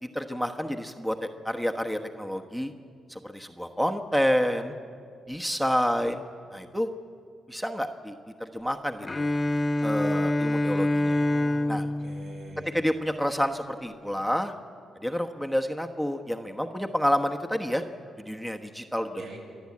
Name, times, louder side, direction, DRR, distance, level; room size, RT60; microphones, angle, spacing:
voice 1, 0.0-2.7 3.1-4.7 5.3-6.2 6.5-6.9 7.5-8.1 8.4-9.3 9.8-11.2 11.7-11.9 12.6-14.5 15.0-17.8 18.3-19.2, equal, 5° right, 5 dB, 1.1 m, -29 dB
Bowed string instrument, 9.0-13.1, left 1 dB, 20° left, 1.0 m, -27 dB
voice 2, 11.0-12.7 19.2-19.4, right 3 dB, 80° right, 0 dB, 6.0 m, -44 dB
29.0 x 11.5 x 8.6 m, 2.4 s
cardioid pair, 80°, 0 cm